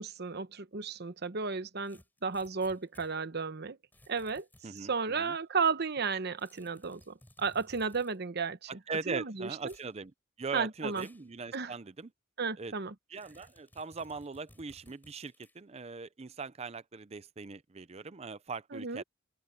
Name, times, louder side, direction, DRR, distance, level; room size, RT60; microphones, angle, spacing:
voice 1, 0.0-3.8 4.1-4.5 4.8-8.7 9.1-9.7 10.5-11.1 11.5-11.7 12.4-12.9 18.7-19.0, right 5 dB, 50° right, 1.0 m, -33 dB
sound 1, 1.8-3.1 3.9-4.8 6.4-8.2 9.6-9.9 10.9-11.3 11.7-11.8 13.2-15.6, left 1 dB, 10° left, 6.8 m, -60 dB
voice 2, 4.6-5.4 8.7-10.1 10.4-12.1 12.6-12.7 13.1-19.0, right 4 dB, 30° right, 0.5 m, -40 dB
open air
head